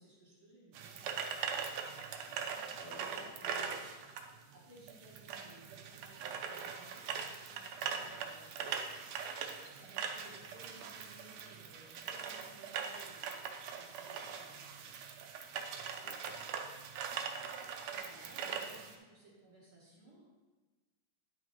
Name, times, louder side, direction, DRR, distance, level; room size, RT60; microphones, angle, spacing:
voice 1, 0.0-3.3 4.5-8.7 9.3-15.0 17.9-20.2, right 1 dB, 55° right, -5 dB, 1.8 m, -60 dB
sound 1, 0.7-18.9, right 7 dB, 75° right, 1.7 m, -41 dB
voice 2, 2.8-3.9 15.9-16.4, left 6 dB, 80° left, 6 dB, 1.8 m, -56 dB
10.0 x 6.2 x 3.0 m, 1.2 s
omnidirectional pair, 3.5 m